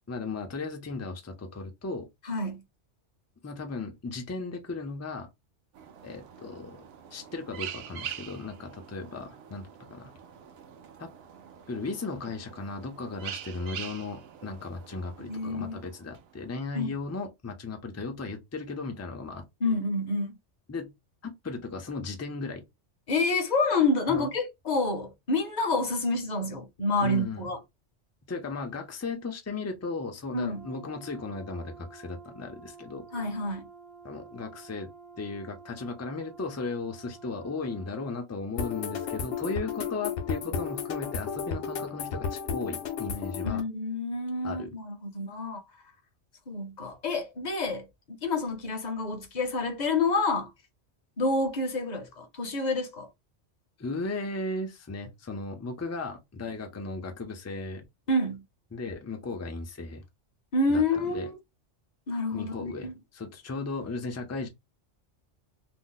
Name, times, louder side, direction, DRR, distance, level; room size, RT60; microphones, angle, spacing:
voice 1, 0.1-2.1 3.4-5.3 6.0-6.8 7.1-10.1 11.0-11.1 11.7-19.8 20.7-20.9 21.2-22.6 24.1-24.3 27.0-27.4 28.3-33.1 34.0-34.9 35.2-43.6 44.4-44.7 53.8-57.9 58.7-60.0 60.7-61.3 62.3-64.5, left 3 dB, 25° left, 0.3 m, -36 dB
voice 2, 2.2-2.6 15.2-15.8 16.7-16.9 19.6-20.4 23.1-27.6 30.3-30.7 33.1-33.7 43.4-45.6 46.5-47.9 48.2-50.5 51.2-53.1 58.1-58.4 60.5-61.4 62.1-62.9, left 2 dB, 45° left, 0.7 m, -28 dB
sound 1, 5.7-16.7, right 9 dB, 65° right, 0.7 m, -44 dB
Brass instrument, 30.5-38.2, right 5 dB, 15° right, 0.6 m, -50 dB
sound 2, 38.6-43.6, left 6 dB, 75° left, 0.9 m, -33 dB
2.7 x 2.0 x 3.8 m
omnidirectional pair, 1.2 m